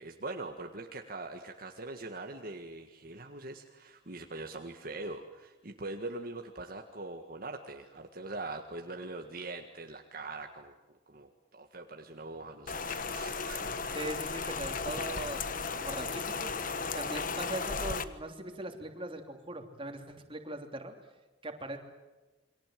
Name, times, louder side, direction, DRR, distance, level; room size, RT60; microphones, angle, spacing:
voice 1, 0.0-10.7 11.1-13.7, right 2 dB, 55° right, 3 dB, 1.9 m, -42 dB
Rain, 12.7-18.0, left 4 dB, 50° left, 1.4 m, -35 dB
voice 2, 13.9-16.6 16.9-20.9 21.4-21.8, right 1 dB, 30° right, 4 dB, 3.3 m, -40 dB
29.0 x 24.0 x 7.8 m, 1.2 s
head